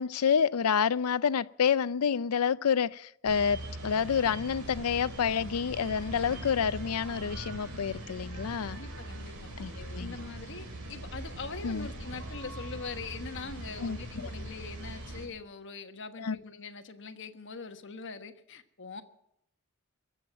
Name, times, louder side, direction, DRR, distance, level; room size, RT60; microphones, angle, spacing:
voice 1, 0.0-8.8 9.6-10.2 11.6-11.9 13.8-14.3 16.2-16.4, left 7 dB, 90° left, 0.5 m, -28 dB
sound 1, 3.2-15.3, right 1 dB, 90° right, 3.4 m, -41 dB
voice 2, 8.6-9.5 10.0-19.0, left 4 dB, 60° left, 1.3 m, -42 dB
22.5 x 7.8 x 7.8 m
head